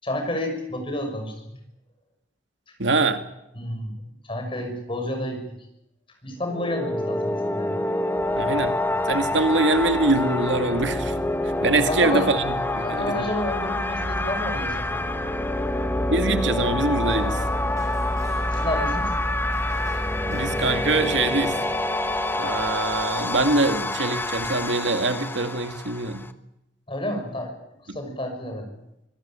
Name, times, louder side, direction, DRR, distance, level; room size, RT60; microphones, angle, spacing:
voice 1, 0.0-1.6 3.6-4.0 4.2-5.4 6.2-7.8 11.9-12.3 12.8-15.0 18.5-19.1 26.9-28.8, left 1 dB, 30° left, 4 dB, 6.2 m, -30 dB
voice 2, 2.8-3.2 8.3-8.8 9.1-11.1 11.6-13.2 16.1-17.4 20.3-21.5 22.3-26.2 27.9-28.0, right 2 dB, 80° right, 8 dB, 2.2 m, -23 dB
sound 1, 6.4-26.3, left 2 dB, 10° left, 1.3 m, -27 dB
sound 2, 8.1-24.7, equal, 35° right, 7.6 m, -34 dB
sound 3, 16.6-21.9, right 1 dB, 15° right, 6.1 m, -46 dB
25.0 x 17.5 x 8.9 m, 0.86 s
head